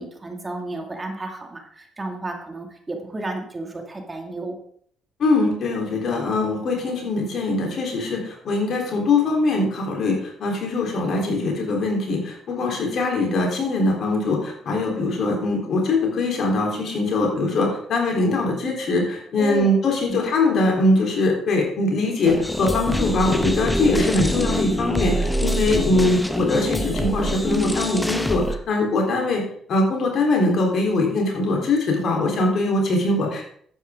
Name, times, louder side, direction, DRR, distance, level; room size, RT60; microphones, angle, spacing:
voice 1, 0.0-4.6 19.4-19.7 20.1-20.2, right 2 dB, 25° right, 3 dB, 2.4 m, -32 dB
voice 2, 5.2-29.4 29.7-33.5, left 2 dB, 60° left, 0 dB, 3.7 m, -22 dB
sound 1, 22.2-28.5, equal, 10° left, 1.1 m, -24 dB
11.0 x 9.1 x 3.7 m, 0.62 s
supercardioid pair, 55°, 0 cm